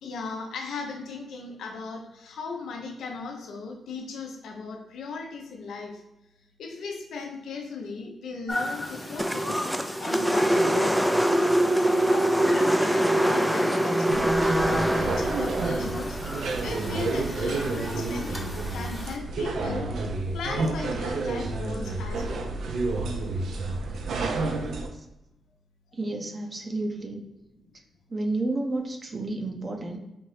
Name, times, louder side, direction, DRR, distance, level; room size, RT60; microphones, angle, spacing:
voice 1, 0.0-6.0 6.6-9.6 10.0-16.2 16.6-19.9 20.3-22.5, left 4 dB, 80° left, 2 dB, 0.6 m, -37 dB
sound 1, 8.5-19.2, left 1 dB, 15° left, 0.8 m, -38 dB
sound 2, 9.2-17.5, right 1 dB, 5° right, 0.3 m, -24 dB
sound 3, 14.1-24.9, right 3 dB, 75° right, 0.4 m, -30 dB
voice 2, 25.9-27.2 28.1-30.0, right 2 dB, 40° right, 3 dB, 0.7 m, -31 dB
4.3 x 2.6 x 3.2 m, 0.90 s
supercardioid pair, 55°, 0 cm